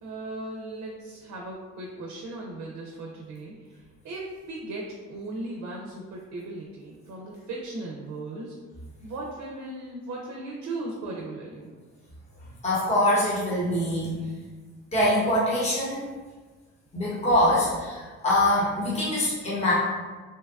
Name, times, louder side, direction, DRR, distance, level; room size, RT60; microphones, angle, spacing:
voice 1, 0.0-8.5 9.0-11.7, right 2 dB, 60° right, -2 dB, 0.5 m, -37 dB
voice 2, 12.6-14.2 14.9-16.1 16.9-19.7, left 1 dB, 20° left, -7 dB, 0.9 m, -24 dB
2.8 x 2.2 x 2.3 m, 1.3 s
cardioid pair, 90°, 30 cm